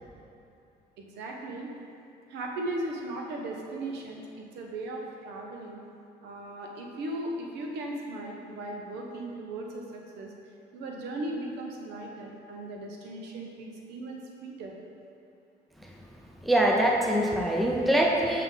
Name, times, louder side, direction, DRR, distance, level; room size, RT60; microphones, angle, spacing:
voice 1, 1.0-1.7 2.3-5.8 6.2-10.3 10.7-14.7, right 2 dB, 80° right, 0 dB, 0.9 m, -37 dB
voice 2, 16.4-18.4, right 1 dB, ahead, -1 dB, 0.5 m, -23 dB
5.6 x 3.7 x 5.7 m, 2.6 s
cardioid pair, 110°, 17 cm